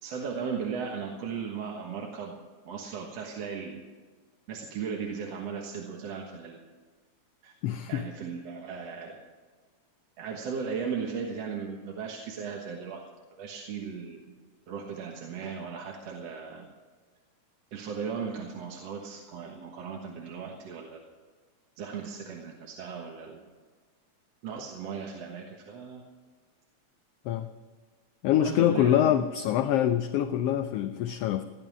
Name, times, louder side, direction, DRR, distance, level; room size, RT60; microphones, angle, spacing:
voice 1, 0.0-2.3 2.7-3.8 4.5-6.6 7.4-7.5 7.9-9.2 10.2-13.0 13.4-14.4 14.7-16.7 17.7-21.0 21.8-23.4 24.4-26.0 28.4-29.2, right 6 dB, 65° right, 0 dB, 2.4 m, -37 dB
voice 2, 7.6-8.0 27.2-27.5 28.2-31.4, left 10 dB, 75° left, 9 dB, 1.4 m, -25 dB
16.5 x 11.5 x 6.1 m, 1.4 s
omnidirectional pair, 3.3 m